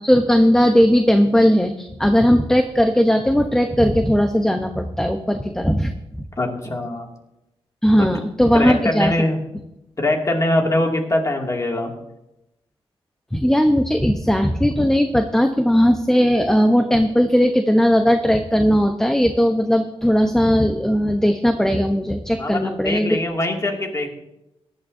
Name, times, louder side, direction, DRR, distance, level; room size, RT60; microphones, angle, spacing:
voice 1, 0.0-5.9 6.2-6.3 7.8-9.1 13.3-23.2, equal, 5° left, 5 dB, 0.8 m, -17 dB
voice 2, 6.4-7.1 8.0-8.1 8.5-9.4 10.0-12.0 22.4-24.1, left 1 dB, 30° left, 1 dB, 2.3 m, -22 dB
18.0 x 11.5 x 2.7 m, 0.89 s
cardioid pair, 90°, 10 cm